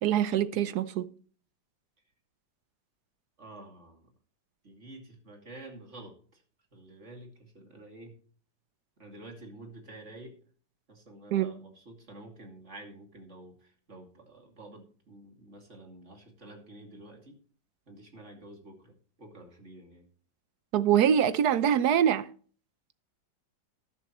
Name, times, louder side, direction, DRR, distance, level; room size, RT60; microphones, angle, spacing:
voice 1, 0.0-1.1 11.3-11.5 20.7-22.3, right 9 dB, 65° right, 1.2 m, -24 dB
voice 2, 3.4-4.1 4.6-6.4 6.7-8.2 9.0-10.4 10.9-17.4 17.9-20.1, right 2 dB, 40° right, 2.8 m, -49 dB
13.0 x 11.0 x 3.1 m
omnidirectional pair, 2.0 m